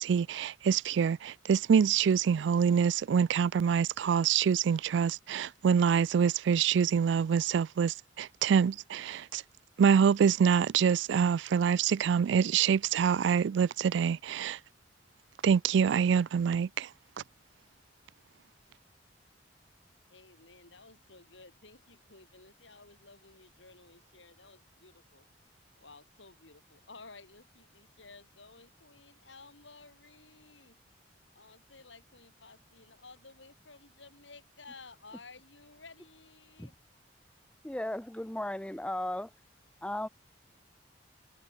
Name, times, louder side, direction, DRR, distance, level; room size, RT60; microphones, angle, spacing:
voice 1, 0.0-9.4 9.8-14.6 15.4-16.9, right 7 dB, 70° right, 0.3 m, -26 dB
voice 2, 20.1-25.3 25.8-30.8 31.3-36.7, left 3 dB, 80° left, 7.8 m, -54 dB
voice 3, 37.6-39.3 39.8-40.1, left 1 dB, 5° left, 0.5 m, -35 dB
head